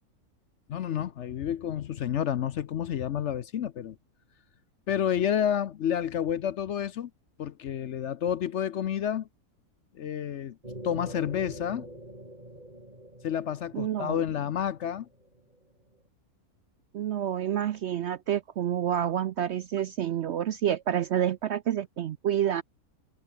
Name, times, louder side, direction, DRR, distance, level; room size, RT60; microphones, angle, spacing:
voice 1, 0.7-4.0 4.9-7.1 7.4-9.3 9.9-10.6 10.8-11.9 13.2-15.1, left 9 dB, 60° left, 0.9 m, -30 dB
sound 1, 10.6-15.7, right 1 dB, 30° right, 6.9 m, -45 dB
voice 2, 13.7-14.2 16.9-22.6, right 10 dB, 65° right, 0.7 m, -28 dB
omnidirectional pair, 1.6 m